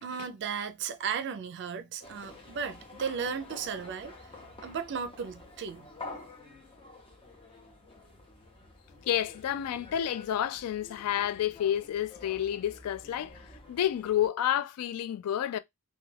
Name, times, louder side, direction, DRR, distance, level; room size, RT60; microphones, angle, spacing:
voice 1, 0.0-4.1 4.6-5.8, right 6 dB, 55° right, 0.4 m, -35 dB
sound 1, 2.0-14.3, left 2 dB, 25° left, 0.7 m, -49 dB
voice 2, 9.1-13.3 13.7-15.6, left 10 dB, 85° left, 0.3 m, -30 dB
2.3 x 2.2 x 3.2 m
head